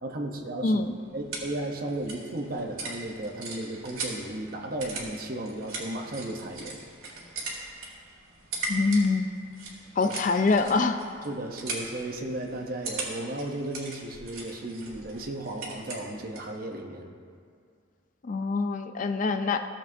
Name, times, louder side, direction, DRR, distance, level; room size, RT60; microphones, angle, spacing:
voice 1, 0.0-0.8 1.1-6.8 10.1-10.2 11.2-17.1, right 1 dB, 45° right, 2 dB, 0.8 m, -35 dB
sound 1, 0.7-16.6, right 3 dB, 85° right, 1.9 m, -40 dB
voice 2, 8.7-9.3 10.0-11.0 18.2-19.7, left 3 dB, 35° left, 8 dB, 0.3 m, -25 dB
15.0 x 7.3 x 2.7 m, 2.2 s
head